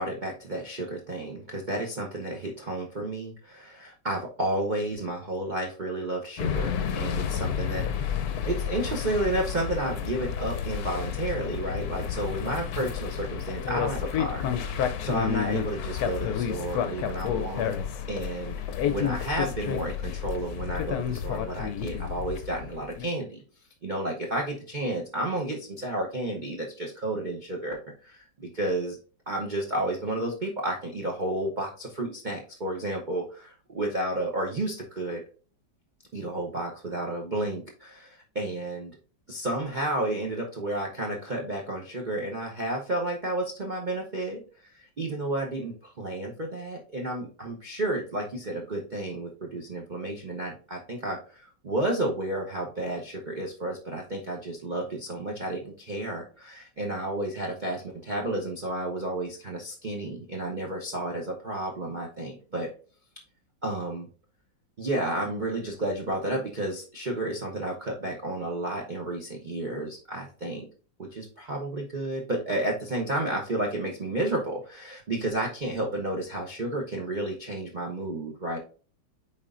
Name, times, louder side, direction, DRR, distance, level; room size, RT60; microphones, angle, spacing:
voice 1, 0.0-8.2 8.4-17.7 18.1-18.6 18.9-23.4 23.8-29.0 29.3-35.2 36.1-38.9 39.3-62.7 63.6-64.1 64.8-70.6 71.0-78.6, right 1 dB, 40° right, -1 dB, 0.6 m, -31 dB
sound 1, 6.4-23.1, left 8 dB, 65° left, 1.0 m, -30 dB
8.6 x 4.4 x 2.5 m, 0.40 s
omnidirectional pair, 2.0 m